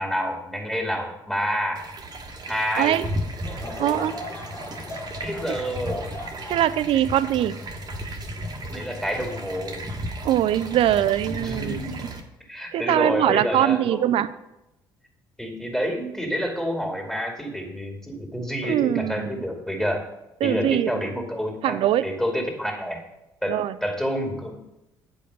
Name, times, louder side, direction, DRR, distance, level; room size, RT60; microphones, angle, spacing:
voice 1, 0.0-1.8 2.5-3.0 3.6-4.0 5.2-6.1 8.7-9.8 11.3-12.1 12.5-14.0 15.4-20.0 20.4-23.0 23.4-23.5 23.8-24.5, equal, 5° left, 2 dB, 2.4 m, -28 dB
sound 1, 1.8-12.2, right 1 dB, 35° right, 1.3 m, -35 dB
voice 2, 2.8-3.1 3.8-4.1 6.5-7.6 10.2-11.9 12.7-14.3 18.6-19.4 20.4-21.1 21.6-22.0 23.5-23.8, right 12 dB, 50° right, 15 dB, 0.5 m, -22 dB
Laughter / Crowd, 3.3-8.8 9.4-9.5 10.3-10.5, left 1 dB, 25° left, 1.5 m, -40 dB
9.1 x 5.3 x 5.4 m, 0.93 s
figure-of-eight pair, 50°, 12 cm